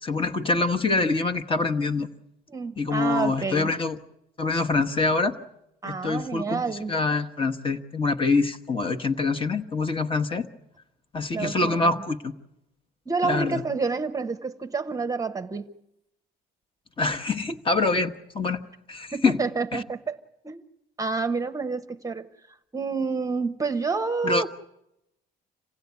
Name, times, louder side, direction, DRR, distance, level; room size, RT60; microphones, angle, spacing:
voice 1, 0.0-2.1 2.8-4.0 4.4-5.4 5.8-10.5 11.1-12.3 13.2-13.6 17.0-18.6 18.9-19.4 19.7-19.8 24.2-24.5, left 3 dB, 30° left, 1.3 m, -25 dB
voice 2, 2.5-3.7 5.8-6.9 11.3-11.9 13.1-15.7 19.1-20.2 20.4-20.6 21.0-22.3 22.7-24.5, right 4 dB, 20° right, 0.9 m, -29 dB
27.0 x 16.0 x 9.5 m
cardioid pair, 110°, 17 cm